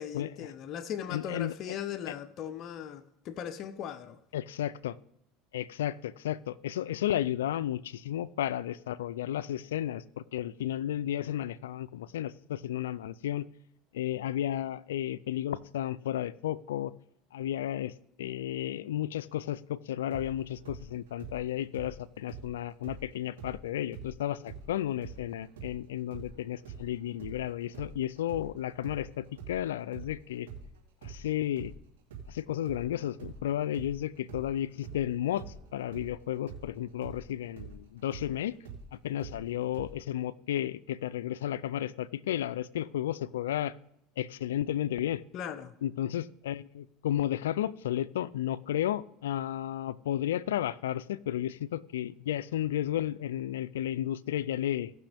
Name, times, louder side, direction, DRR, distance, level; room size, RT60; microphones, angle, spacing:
voice 1, 0.0-4.2 45.3-45.7, left 9 dB, 50° left, 0.7 m, -38 dB
voice 2, 1.1-1.7 4.3-5.0 5.5-13.5 13.9-16.9 17.3-17.9 18.2-30.5 31.0-31.7 32.3-35.4 35.7-38.5 39.0-43.7 44.2-45.2 45.8-54.9, left 12 dB, 90° left, 0.4 m, -33 dB
sound 1, 20.1-23.6 23.9-31.8 32.1-39.9, right 5 dB, 85° right, 2.8 m, -46 dB
17.5 x 6.1 x 3.5 m
supercardioid pair, 95°, 0 cm